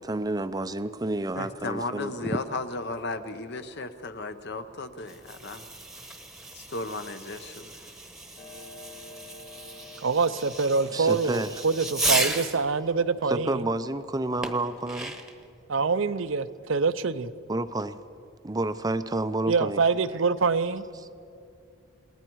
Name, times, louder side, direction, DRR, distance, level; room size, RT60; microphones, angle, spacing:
voice 1, 0.0-2.4 10.9-11.6 13.3-15.1 17.5-18.0 18.4-19.8, right 2 dB, 20° right, 12 dB, 0.5 m, -30 dB
voice 2, 1.3-5.7 6.5-7.9, left 3 dB, 50° left, 9 dB, 0.9 m, -35 dB
Fireworks, 5.0-12.7 14.4-15.4, right 2 dB, ahead, 1.1 m, -34 dB
Clock, 8.4-13.3, left 3 dB, 30° left, 1.8 m, -50 dB
voice 3, 10.0-13.6 15.7-17.3 19.5-20.8, right 4 dB, 65° right, 12 dB, 0.6 m, -25 dB
29.0 x 19.5 x 4.7 m, 2.5 s
head